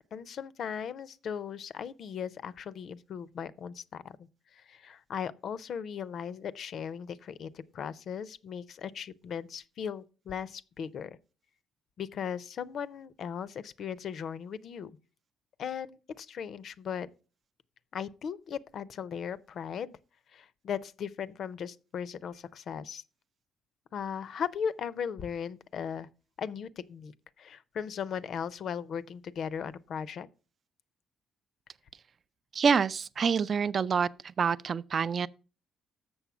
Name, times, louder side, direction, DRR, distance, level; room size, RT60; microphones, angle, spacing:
voice 1, 0.1-4.2 4.5-11.2 12.0-14.9 15.6-17.1 17.9-20.0 20.3-23.0 23.9-26.1 26.4-30.3, left 7 dB, 65° left, 0.5 m, -37 dB
voice 2, 32.5-34.1 34.4-35.3, right 6 dB, 45° right, 0.3 m, -26 dB
7.0 x 6.5 x 5.9 m
cardioid pair, 90°, 0 cm